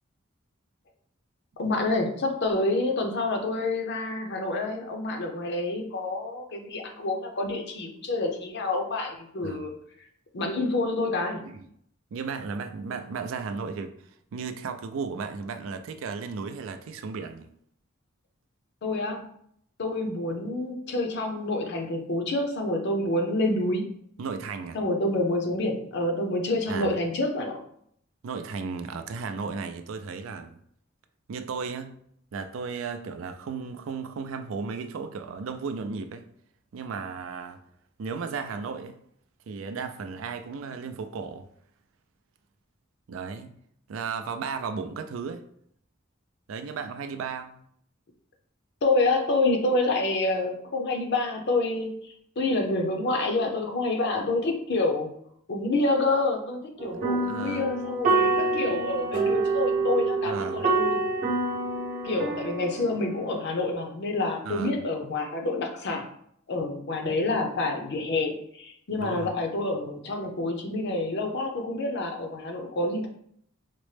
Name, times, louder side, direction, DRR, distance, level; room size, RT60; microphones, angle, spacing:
voice 1, 1.6-9.7 10.3-11.5 18.8-19.3 19.8-23.8 24.7-27.6 48.8-55.1 55.5-61.0 62.0-66.1 66.5-73.1, left 2 dB, 55° left, 0.6 m, -28 dB
voice 2, 12.1-13.9 14.3-17.5 24.2-24.8 26.7-26.9 28.2-30.6 31.3-31.9 32.3-36.3 36.7-37.6 38.0-39.0 39.5-41.5 43.1-43.5 43.9-45.5 46.5-47.6 57.3-57.7 60.2-60.6 64.4-64.7 69.0-69.3, right 5 dB, 70° right, 0.4 m, -34 dB
sound 1, 56.8-63.4, right 3 dB, 40° right, 0.7 m, -27 dB
4.1 x 2.1 x 3.2 m
head